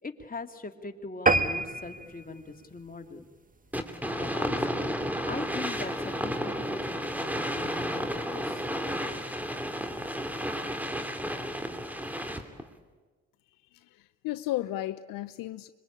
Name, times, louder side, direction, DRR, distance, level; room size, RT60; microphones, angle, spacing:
voice 1, 0.0-3.2 4.1-9.3, left 3 dB, 25° left, 5 dB, 2.9 m, -41 dB
sound 1, 1.3-4.0 4.5-4.7 5.1-5.2 5.5-5.6 5.9-6.0, right 3 dB, 25° right, 1.7 m, -29 dB
sound 2, 3.7-12.6, equal, 5° right, 3.0 m, -32 dB
voice 2, 13.7-15.7, left 15 dB, 75° left, 13 dB, 0.8 m, -34 dB
25.5 x 23.0 x 8.8 m, 1.3 s
supercardioid pair, 55°, 34 cm